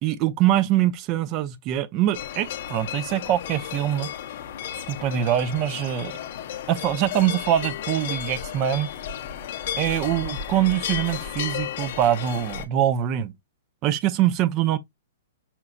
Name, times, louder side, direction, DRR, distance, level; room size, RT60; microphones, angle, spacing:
voice 1, 0.0-4.1 4.9-6.1 6.7-8.9 9.8-13.3 13.8-14.8, right 12 dB, 30° right, 0.3 m, -23 dB
sound 1, 2.1-12.6, left 9 dB, 50° left, 0.5 m, -33 dB
5.6 x 2.0 x 2.4 m
hypercardioid pair, 160°, 0 cm